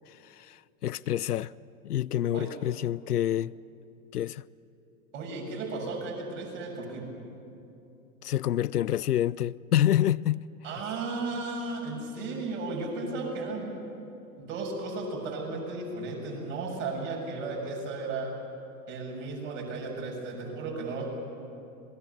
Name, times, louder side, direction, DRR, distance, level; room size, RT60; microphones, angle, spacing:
voice 1, 0.1-1.5 1.8-3.5 4.1-4.4 8.2-10.5, left 12 dB, 80° left, 0.5 m, -27 dB
voice 2, 5.1-7.0 10.6-13.7 14.4-18.3 18.9-21.0, right 3 dB, 55° right, 7.2 m, -34 dB
26.0 x 20.0 x 6.9 m
figure-of-eight pair, 95°, 45 cm